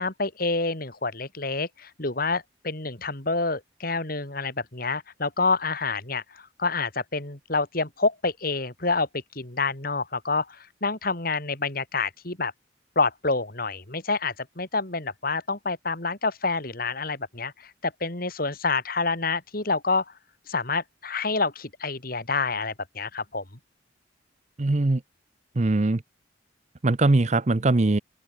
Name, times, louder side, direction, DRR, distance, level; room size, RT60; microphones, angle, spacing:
voice 1, 0.0-12.5 12.9-20.1 20.5-23.4, left 3 dB, 50° left, 2.9 m, -28 dB
voice 2, 24.6-25.0 25.6-26.0 26.8-28.0, right 2 dB, 35° right, 0.7 m, -21 dB
open air
head